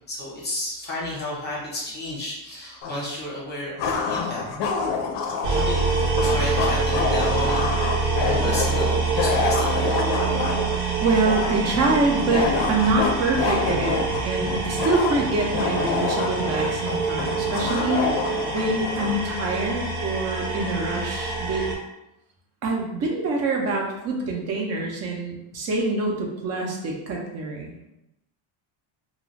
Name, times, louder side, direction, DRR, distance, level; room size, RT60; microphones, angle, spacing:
voice 1, 0.1-4.4 5.5-5.8 6.2-7.7 8.4-9.9, left 1 dB, 20° left, -5 dB, 0.7 m, -32 dB
sound 1, 2.8-2.9 3.8-19.2, left 5 dB, 60° left, 0.5 m, -27 dB
sound 2, 5.4-21.7, right 4 dB, 80° right, 0.9 m, -26 dB
voice 2, 11.0-18.0 18.5-21.7 22.6-27.9, right 3 dB, 35° right, 0 dB, 0.4 m, -25 dB
2.4 x 2.2 x 3.1 m, 0.89 s
cardioid pair, 165°, 49 cm